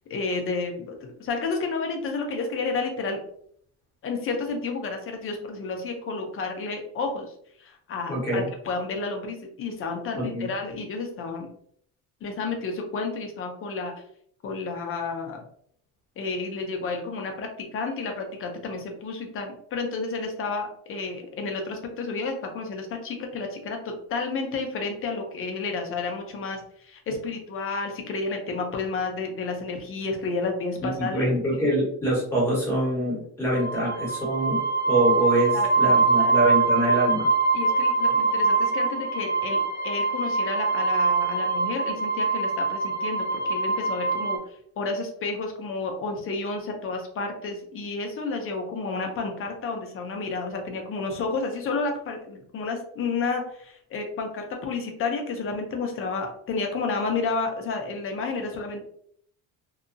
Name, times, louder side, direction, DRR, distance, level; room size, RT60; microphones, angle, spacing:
voice 1, 0.1-3.2 4.0-7.3 7.6-11.5 12.2-13.9 14.4-15.4 16.2-23.8 24.1-31.3 35.5-35.9 36.2-36.3 37.5-44.4 44.8-58.8, left 4 dB, 35° left, 3 dB, 0.5 m, -31 dB
voice 2, 8.1-8.4 10.2-10.5 30.8-34.6 34.9-37.3, right 1 dB, 5° left, -5 dB, 1.3 m, -25 dB
sound 1, 33.5-44.4, right 4 dB, 25° right, 1.3 m, -24 dB
2.7 x 2.3 x 2.5 m, 0.65 s
cardioid pair, 150°, 39 cm